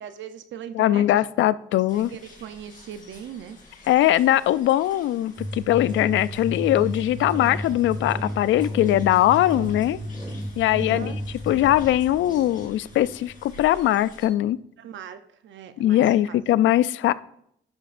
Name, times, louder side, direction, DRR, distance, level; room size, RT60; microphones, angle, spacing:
voice 1, 0.0-1.3 1.9-3.6 10.7-11.2 14.8-16.4, right 9 dB, 70° right, 9 dB, 0.7 m, -39 dB
voice 2, 0.7-2.1 3.9-10.0 10.6-11.1 11.5-14.6 15.8-17.1, left 13 dB, 75° left, 18 dB, 0.4 m, -21 dB
sound 1, 1.9-14.3, left 2 dB, 40° left, 3.3 m, -50 dB
sound 2, 5.4-13.6, equal, 20° right, 1.9 m, -33 dB
11.5 x 10.0 x 2.6 m, 0.72 s
cardioid pair, 90°, 20 cm